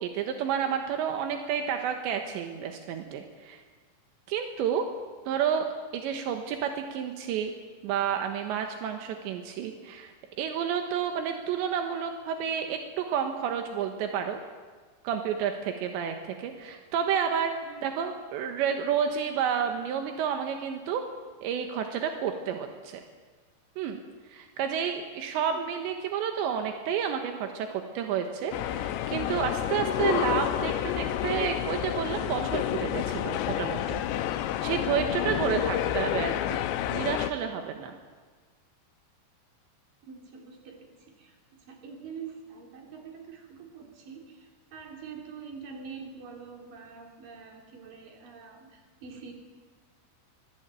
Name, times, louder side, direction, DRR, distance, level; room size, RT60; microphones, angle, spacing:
voice 1, 0.0-3.6 4.3-4.9 5.3-5.7 5.9-7.5 7.8-10.1 10.4-14.4 15.1-21.0 21.4-23.0 23.8-24.0 24.3-34.0 34.6-38.0, right 8 dB, 85° right, 5 dB, 3.6 m, -30 dB
sound 1, 28.5-37.3, left 12 dB, 85° left, 3.2 m, -29 dB
voice 2, 35.2-36.2 40.0-49.3, right 6 dB, 55° right, 1 dB, 5.0 m, -45 dB
24.5 x 20.0 x 9.1 m, 1.5 s
omnidirectional pair, 5.0 m